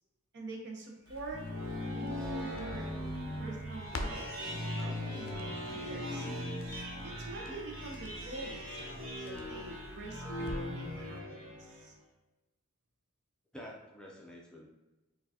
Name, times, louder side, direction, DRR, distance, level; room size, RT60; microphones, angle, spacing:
voice 1, 0.3-1.5 1.9-2.9 3.4-6.3 6.9-11.9, right 2 dB, 55° right, 0 dB, 0.7 m, -46 dB
Crackle, 1.1-10.9 11.2-11.3, left 2 dB, 85° left, 0.4 m, -48 dB
sound 1, 1.1-11.9, left 1 dB, 85° right, 1.0 m, -39 dB
voice 2, 5.6-5.9 7.5-7.6 13.5-14.7, equal, 5° left, -2 dB, 0.4 m, -49 dB
4.3 x 2.3 x 2.7 m, 1.0 s
head